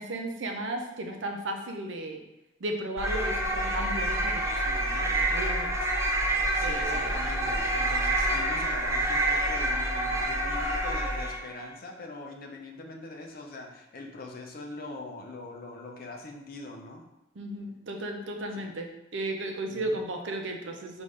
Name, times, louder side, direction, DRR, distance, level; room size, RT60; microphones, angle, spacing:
voice 1, 0.0-2.2 2.6-5.8 6.6-7.1 17.4-18.9 19.1-21.0, right 1 dB, 75° right, 3 dB, 0.6 m, -35 dB
sound 1, 3.0-11.5, right 1 dB, 15° right, 0.4 m, -27 dB
voice 2, 6.5-17.1 18.6-18.7 19.7-20.0, left 2 dB, 50° left, 2 dB, 0.6 m, -42 dB
5.2 x 2.6 x 3.2 m, 0.90 s
head